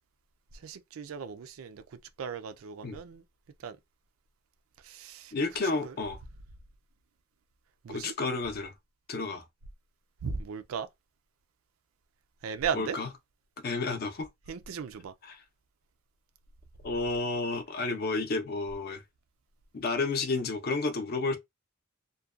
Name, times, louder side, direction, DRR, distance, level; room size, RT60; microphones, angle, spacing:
voice 1, 0.6-1.8 2.2-3.2 3.6-3.8 4.9-5.3 5.8-5.9 7.8-8.1 10.2-10.9 12.4-13.0 14.5-15.1, right 6 dB, 85° right, 0.4 m, -36 dB
voice 2, 5.3-6.2 7.9-8.7 9.1-9.4 12.7-13.1 13.6-14.3 15.2-15.4 16.8-19.0 19.7-21.4, left 3 dB, 50° left, 0.5 m, -31 dB
2.6 x 2.2 x 2.3 m
head